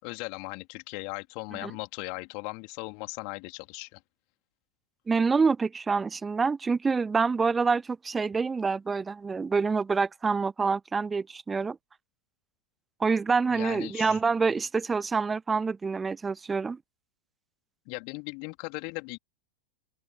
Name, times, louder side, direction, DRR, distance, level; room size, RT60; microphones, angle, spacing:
voice 1, 0.0-4.0 13.5-14.2 17.9-19.2, left 36 dB, 45° left, 3.6 m, -38 dB
voice 2, 5.1-11.8 13.0-16.8, right 4 dB, 15° right, 0.6 m, -26 dB
open air
figure-of-eight pair, 90°, 0 cm